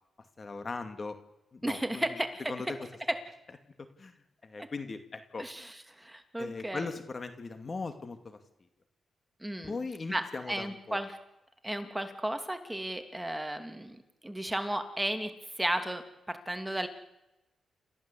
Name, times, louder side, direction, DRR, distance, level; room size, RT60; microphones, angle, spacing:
voice 1, 0.4-1.2 1.5-2.1 2.5-2.8 3.8-4.1 4.4-5.5 6.4-8.4 9.6-11.0, left 4 dB, 40° left, 8 dB, 2.4 m, -39 dB
voice 2, 1.6-2.4 5.4-6.9 9.4-9.7 10.1-11.2 11.6-14.0 14.2-16.0 16.3-16.9, right 1 dB, 10° right, 7 dB, 2.8 m, -34 dB
29.0 x 15.0 x 8.5 m, 0.92 s
cardioid pair, 90°, 0 cm